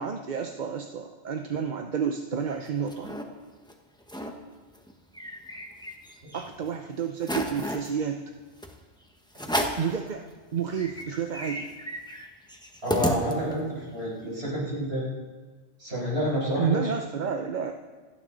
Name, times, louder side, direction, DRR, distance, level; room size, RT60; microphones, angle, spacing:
voice 1, 0.0-3.1 6.3-8.2 9.8-11.7 14.2-14.4 16.6-17.7, right 7 dB, 50° right, 5 dB, 0.8 m, -30 dB
sound 1, 2.4-3.2 3.7-3.8 4.0-4.3 4.7-6.3 6.7-6.8 7.2-7.9 8.6-8.8 9.3-9.9 10.4-10.5 10.7-13.7, equal, 5° left, 1.2 m, -32 dB
voice 2, 12.8-15.0 15.8-16.8, equal, 70° right, -6 dB, 6.4 m, -29 dB
27.5 x 9.5 x 4.0 m, 1.3 s
omnidirectional pair, 1.1 m